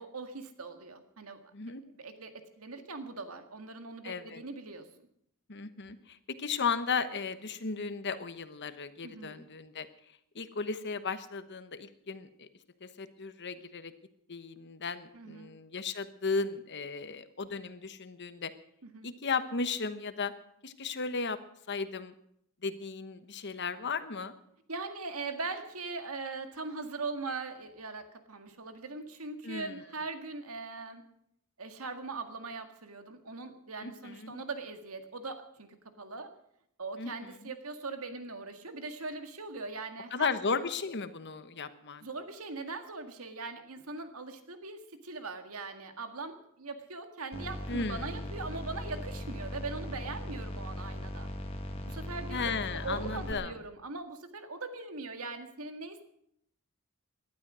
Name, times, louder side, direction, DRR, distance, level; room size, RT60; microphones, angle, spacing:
voice 1, 0.0-1.4 1.9-4.9 9.0-9.5 15.1-15.6 18.8-19.1 24.7-31.0 31.6-35.7 36.0-36.3 36.8-40.3 42.0-51.3 51.7-56.0, right 3 dB, 75° right, 7 dB, 1.9 m, -41 dB
voice 2, 4.0-4.4 5.5-9.9 10.3-12.5 12.8-13.9 14.3-18.5 19.0-20.3 20.6-21.4 21.7-22.1 22.6-24.4 29.4-29.8 33.8-34.4 37.0-37.5 40.1-42.0 47.7-48.3 52.3-53.5, left 4 dB, 55° left, 11 dB, 1.1 m, -35 dB
sound 1, 47.3-53.3, left 1 dB, 25° left, 1.7 m, -39 dB
18.5 x 12.0 x 6.3 m, 0.72 s
head